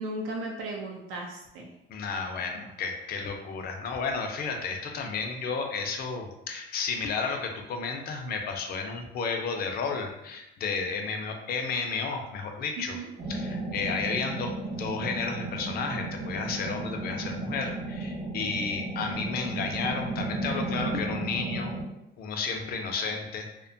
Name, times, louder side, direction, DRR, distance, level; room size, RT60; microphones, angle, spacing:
voice 1, 0.0-1.7 12.8-13.1, right 2 dB, 80° right, 0 dB, 0.5 m, -36 dB
voice 2, 1.9-13.0 13.3-21.7 22.2-23.7, left 4 dB, 50° left, 3 dB, 0.4 m, -32 dB
sound 1, 13.2-21.8, right 2 dB, 45° right, 1.0 m, -34 dB
2.7 x 2.1 x 2.6 m, 0.89 s
cardioid pair, 145°, 21 cm